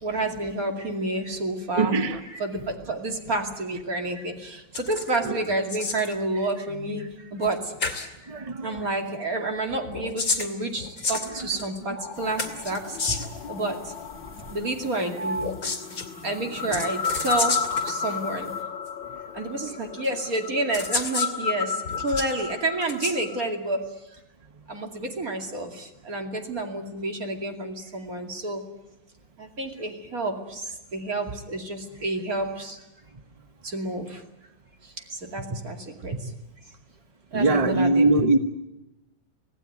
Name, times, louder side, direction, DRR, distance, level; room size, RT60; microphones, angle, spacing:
voice 1, 0.0-2.0 2.3-7.7 8.2-8.3 8.6-13.0 13.5-13.9 14.5-15.5 16.2-18.5 19.3-24.2 24.7-28.6 29.4-32.8 33.6-34.2 34.8-36.3 37.3-38.1, right 2 dB, 45° right, 3 dB, 2.9 m, -30 dB
voice 2, 1.8-2.2 5.2-5.4 8.3-8.8 11.4-11.5 15.2-15.5 37.3-38.4, right 2 dB, 25° right, 8 dB, 0.9 m, -22 dB
sound 1, 4.7-5.2 5.4-6.1 7.4-7.5 7.8-8.1 9.8-11.8 12.4-13.4 15.4-16.1 16.7-17.9 18.9-19.0 20.0-20.1 20.7-21.3 21.8-22.3 22.8-23.2, left 4 dB, 45° left, 2.9 m, -30 dB
sound 2, 12.0-23.5, left 6 dB, 70° left, 1.7 m, -33 dB
sound 3, 12.1-18.6, left 1 dB, 5° left, 3.0 m, -47 dB
26.0 x 17.5 x 9.4 m, 0.96 s
omnidirectional pair, 2.1 m